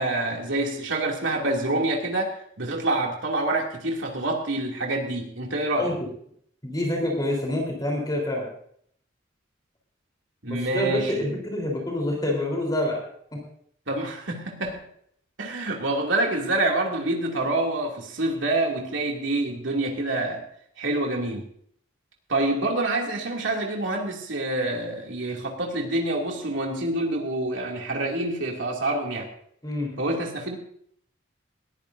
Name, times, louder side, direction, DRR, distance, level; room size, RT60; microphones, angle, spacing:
voice 1, 0.0-5.9 10.4-11.3 13.9-14.8 15.4-20.4 20.8-21.4 22.3-29.3 30.0-30.6, right 2 dB, 75° right, 0 dB, 2.6 m, -27 dB
voice 2, 6.6-8.5 10.5-13.0 29.6-29.9, left 1 dB, 20° left, 0 dB, 3.8 m, -27 dB
20.0 x 14.5 x 2.7 m, 0.65 s
head